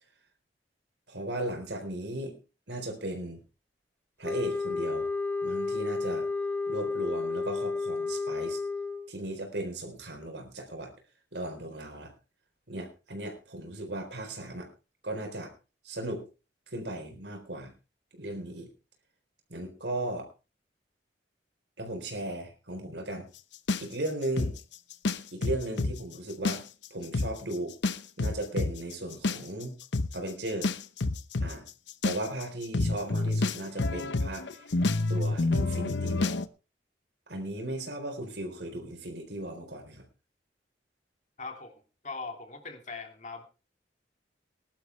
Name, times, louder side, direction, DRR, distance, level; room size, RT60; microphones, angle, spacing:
voice 1, 1.1-2.4 2.7-3.4 4.2-5.1 5.4-6.3 6.7-8.6 9.1-10.9 11.3-12.1 12.7-14.7 15.0-15.5 15.8-16.2 16.7-17.7 18.1-18.7 19.5-20.3 21.8-23.3 23.8-24.6 25.3-26.6 26.9-27.7 28.2-29.8 30.1-30.7 31.4-31.7 32.0-34.7 35.1-36.4 37.3-40.0, right 1 dB, 70° right, 5 dB, 4.0 m, -36 dB
sound 1, 4.2-9.1, left 3 dB, 10° left, 1.0 m, -31 dB
sound 2, 23.7-25.9 26.3-26.9 27.1-27.3 27.8-36.5, left 2 dB, 80° left, 0.9 m, -28 dB
voice 2, 41.4-43.4, left 4 dB, 40° left, 5 dB, 2.8 m, -41 dB
20.0 x 11.5 x 3.3 m, 0.31 s
head